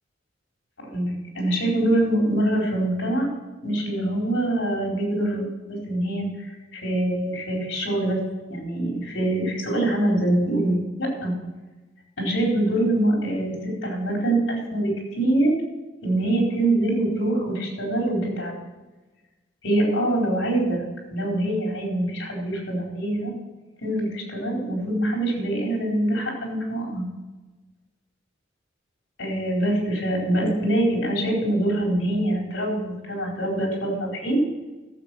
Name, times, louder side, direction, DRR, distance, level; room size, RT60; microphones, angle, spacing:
voice 1, 0.8-3.3 3.6-6.5 6.7-8.2 8.5-11.3 12.2-14.9 15.2-15.5 16.0-18.6 19.6-20.8 21.1-23.3 23.8-27.1 29.2-34.4, right 1 dB, 85° left, -1 dB, 4.6 m, -24 dB
13.5 x 7.7 x 6.2 m, 1.2 s
head